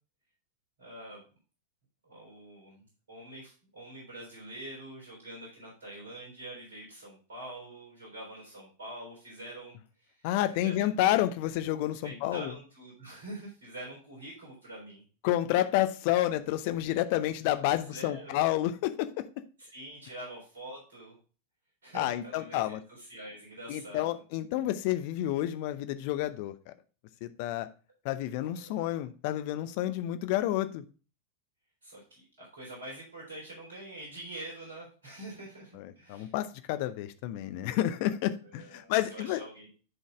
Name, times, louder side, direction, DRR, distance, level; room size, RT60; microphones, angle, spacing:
voice 1, 0.8-1.2 2.0-11.3 12.0-15.0 17.7-18.4 19.6-21.2 21.8-24.1 28.6-29.1 31.8-36.3 38.4-39.7, right 1 dB, 65° right, -3 dB, 3.8 m, -45 dB
voice 2, 10.2-12.5 15.2-19.3 21.9-22.8 23.7-26.5 27.2-27.7 28.0-30.8 36.1-39.4, left 13 dB, 45° left, 11 dB, 0.6 m, -29 dB
11.0 x 4.1 x 3.6 m, 0.36 s
figure-of-eight pair, 90°, 0 cm